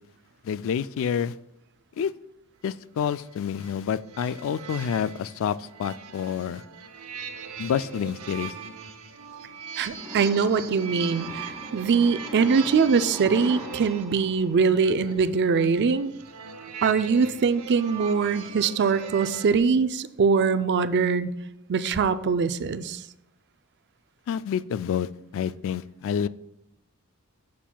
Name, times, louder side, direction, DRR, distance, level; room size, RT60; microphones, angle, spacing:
voice 1, 0.4-1.3 2.0-2.1 2.6-6.6 7.6-8.5 24.3-26.3, left 8 dB, 65° left, 0.3 m, -28 dB
sound 1, 3.0-19.6, right 7 dB, 75° right, 0.8 m, -41 dB
voice 2, 9.8-16.1 16.8-21.3 21.7-23.0, right 5 dB, 50° right, 0.4 m, -23 dB
sound 2, 9.9-15.3, equal, 5° right, 2.2 m, -41 dB
11.5 x 7.4 x 2.3 m
head